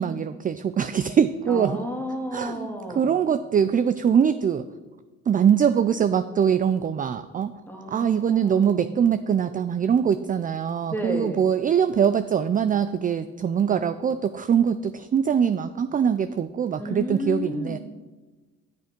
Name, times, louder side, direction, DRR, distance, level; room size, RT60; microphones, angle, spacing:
voice 1, 0.0-1.8 2.3-4.6 5.3-7.5 7.9-17.8, right 8 dB, 30° right, 12 dB, 0.3 m, -23 dB
voice 2, 1.5-3.2 7.7-8.8 10.9-11.5 16.8-17.8, equal, 5° left, 1 dB, 2.0 m, -32 dB
10.5 x 6.6 x 5.1 m, 1.3 s
cardioid pair, 90°, 30 cm